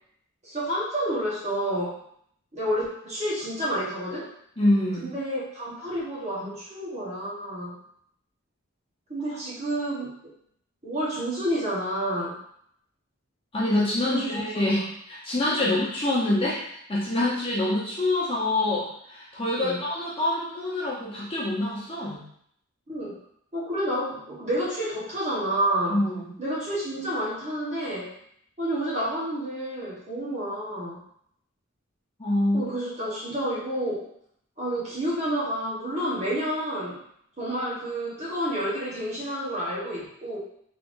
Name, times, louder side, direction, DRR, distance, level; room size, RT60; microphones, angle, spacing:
voice 1, 0.4-2.0 2.5-4.3 5.0-7.8 9.1-10.1 10.8-12.4 14.0-14.7 15.6-15.7 19.6-19.8 22.9-23.2 23.5-26.0 26.4-28.1 28.6-31.0 32.5-34.1 34.6-37.0 37.4-40.4, right 1 dB, 30° right, -8 dB, 1.2 m, -29 dB
voice 2, 4.6-5.1 13.5-22.2 25.9-26.3 32.2-32.7, left 1 dB, 25° left, -7 dB, 0.8 m, -26 dB
3.4 x 3.4 x 2.6 m, 0.69 s
head